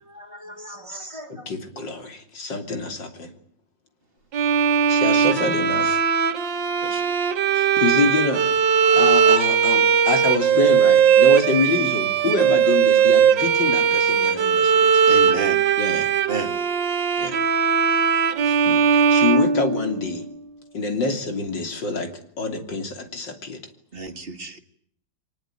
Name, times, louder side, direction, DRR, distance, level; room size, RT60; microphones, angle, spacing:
voice 1, 0.1-1.3 8.8-9.3 18.7-18.8, equal, 15° right, 3.0 m, -39 dB
voice 2, 1.3-3.3 4.9-6.0 7.5-8.5 8.9-15.0 15.8-16.1 17.2-17.4 18.4-20.3 20.7-22.1 22.4-23.6, left 3 dB, 75° left, 3.7 m, -26 dB
Bowed string instrument, 4.3-20.2, right 7 dB, 75° right, 2.1 m, -19 dB
voice 3, 15.1-15.6 16.3-16.5 23.9-24.6, right 3 dB, 30° right, 2.1 m, -30 dB
24.0 x 20.5 x 9.1 m
omnidirectional pair, 2.0 m